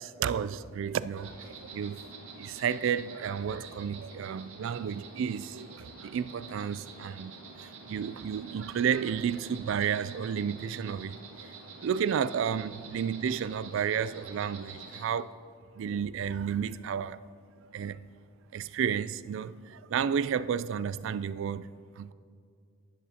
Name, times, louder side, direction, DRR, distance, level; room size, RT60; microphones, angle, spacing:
voice 1, 0.0-2.0 2.4-7.3 7.6-11.5 11.8-15.3 15.8-17.2 17.7-18.1 18.5-21.7 22.0-22.1, right 7 dB, 60° right, 0.3 m, -32 dB
Insect, 1.2-15.0, right 4 dB, 80° right, 1.7 m, -48 dB
13.0 x 11.0 x 2.8 m
head